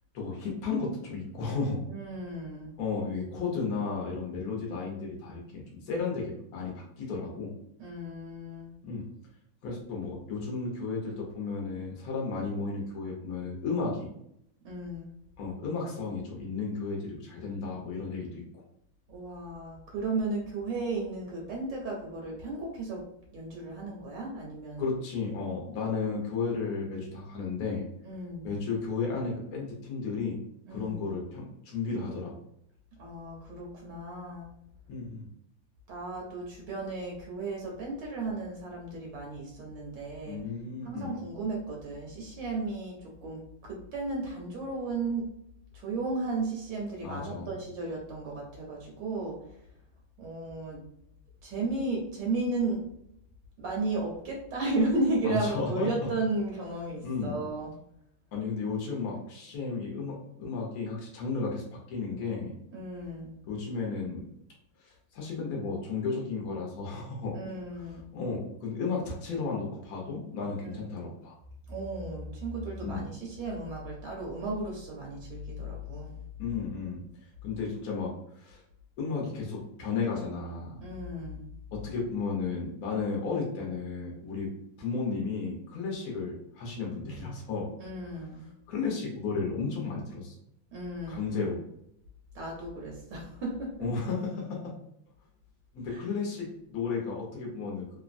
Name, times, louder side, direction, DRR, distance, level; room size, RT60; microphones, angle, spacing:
voice 1, 0.1-1.8 2.8-7.5 8.8-9.0 9.6-14.1 15.4-18.6 24.8-27.8 28.4-30.4 30.7-32.3 34.9-35.3 40.3-41.1 47.0-47.5 55.2-55.9 57.0-57.4 58.3-62.5 63.4-64.2 64.8-67.3 67.8-71.3 72.8-73.1 76.4-77.0 77.4-78.6 79.0-80.8 81.7-84.5 84.8-87.7 88.7-90.3 91.1-91.6 93.8-94.7 95.7-97.8, left 4 dB, 65° left, -1 dB, 0.9 m, -33 dB
voice 2, 1.9-2.7 7.8-8.7 14.6-15.1 19.1-23.0 23.3-24.9 25.4-26.0 28.0-28.5 30.6-31.0 33.0-34.5 35.9-40.4 40.8-45.3 45.7-49.4 50.2-50.8 51.4-52.8 53.6-57.7 62.7-63.3 67.3-68.1 70.6-70.8 71.7-76.1 80.8-81.4 87.8-88.5 90.7-91.4 92.3-93.9 95.9-96.0, right 2 dB, 75° right, -2 dB, 1.2 m, -34 dB
3.1 x 2.1 x 2.5 m, 0.74 s
omnidirectional pair, 2.1 m